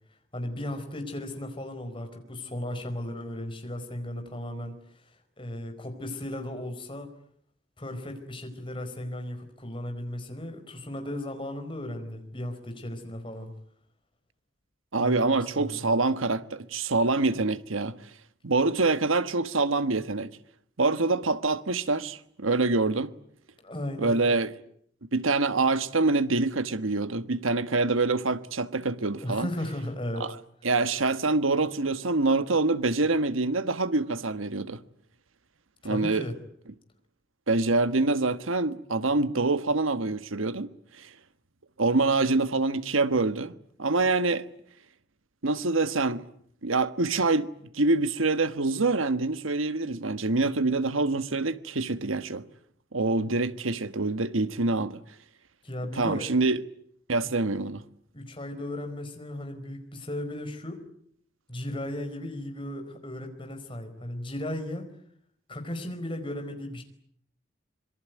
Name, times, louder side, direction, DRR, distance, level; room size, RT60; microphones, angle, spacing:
voice 1, 0.3-4.8 5.4-7.1 7.8-13.5 14.9-15.8 23.6-24.1 29.2-30.3 35.8-36.3 55.6-56.3 57.2-57.3 58.1-60.8 61.5-64.9 65.5-66.8, left 1 dB, 25° left, 4.6 m, -36 dB
voice 2, 14.9-18.0 18.4-20.3 20.8-23.1 24.0-24.5 25.1-29.5 30.2-30.3 30.6-34.8 35.8-36.3 37.5-40.7 41.0-41.1 41.8-44.4 45.4-46.2 46.6-52.4 52.9-55.0 55.9-56.6 57.1-57.8, right 3 dB, 90° right, 1.4 m, -25 dB
26.0 x 23.0 x 9.3 m
head